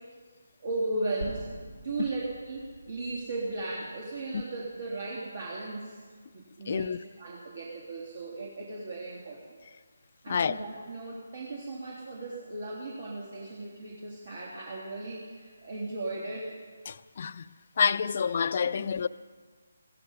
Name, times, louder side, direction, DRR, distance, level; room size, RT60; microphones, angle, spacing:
voice 1, 0.6-1.5 1.8-6.0 6.3-9.6 10.2-16.5 18.7-18.9, right 2 dB, 55° right, 3.1 m, -36 dB
sound 1, 1.2-5.4, right 1 dB, 80° right, 3.6 m, -46 dB
voice 2, 6.7-7.0 10.3-10.6 16.9-17.4 17.8-19.1, left 6 dB, 45° left, 0.5 m, -28 dB
15.5 x 15.0 x 5.6 m
figure-of-eight pair, 150°, 0 cm